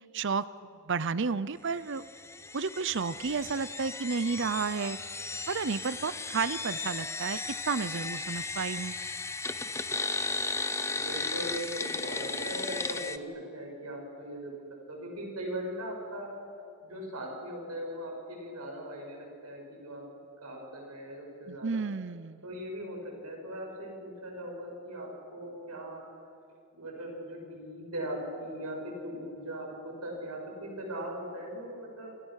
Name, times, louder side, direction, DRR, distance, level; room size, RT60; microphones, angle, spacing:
voice 1, 0.1-0.4 0.9-2.1 2.5-5.0 5.5-9.0 21.5-22.4, right 5 dB, 55° right, 15 dB, 0.6 m, -31 dB
sound 1, 2.0-13.2, left 3 dB, 10° left, 0.8 m, -35 dB
voice 2, 10.9-16.3 16.8-20.1 20.4-21.8 22.4-26.0 26.7-32.1, equal, 90° right, 0 dB, 7.5 m, -39 dB
29.0 x 27.5 x 6.5 m, 2.5 s
head